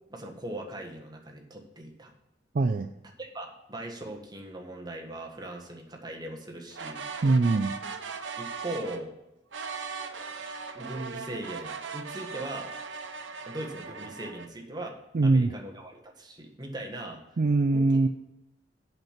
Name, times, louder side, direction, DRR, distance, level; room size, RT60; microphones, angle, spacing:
voice 1, 0.1-2.1 3.2-7.0 8.4-9.1 10.7-12.7 13.5-15.0 15.2-17.4 17.7-18.1, right 1 dB, 20° right, 1 dB, 1.5 m, -39 dB
voice 2, 2.5-2.9 7.2-7.7 15.1-15.5 17.4-18.1, right 3 dB, 45° right, 7 dB, 0.4 m, -22 dB
sound 1, 6.7-9.0 9.5-14.5, right 5 dB, 80° right, 0.9 m, -39 dB
8.0 x 5.9 x 7.3 m, 0.94 s
head